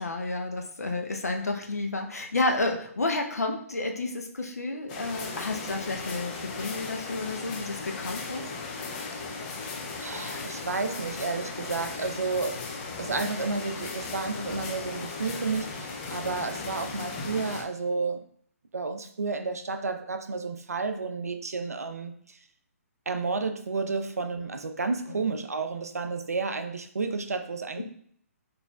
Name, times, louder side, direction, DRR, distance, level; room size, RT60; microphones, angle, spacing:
voice 1, 0.0-8.4 25.1-25.2 27.8-27.9, left 2 dB, 80° left, 4 dB, 0.6 m, -31 dB
sound 1, 4.9-17.6, left 4 dB, 30° left, 0.5 m, -37 dB
voice 2, 10.0-12.6 13.0-18.3 18.7-22.4 23.1-27.8, right 4 dB, 80° right, 8 dB, 0.4 m, -31 dB
4.1 x 3.3 x 2.3 m, 0.63 s
figure-of-eight pair, 135°, 8 cm